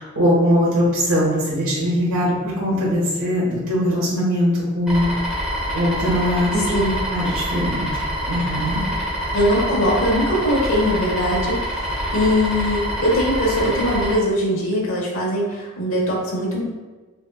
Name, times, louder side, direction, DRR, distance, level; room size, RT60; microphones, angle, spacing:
voice 1, 0.0-5.1 5.7-6.8 7.1-7.9 8.3-8.8, equal, 85° right, -7 dB, 1.3 m, -21 dB
sound 1, 4.9-14.1, equal, ahead, 0.8 m, -26 dB
voice 2, 6.5-6.9 9.3-16.6, equal, 70° left, -3 dB, 1.1 m, -21 dB
5.9 x 2.3 x 2.3 m, 1.3 s
head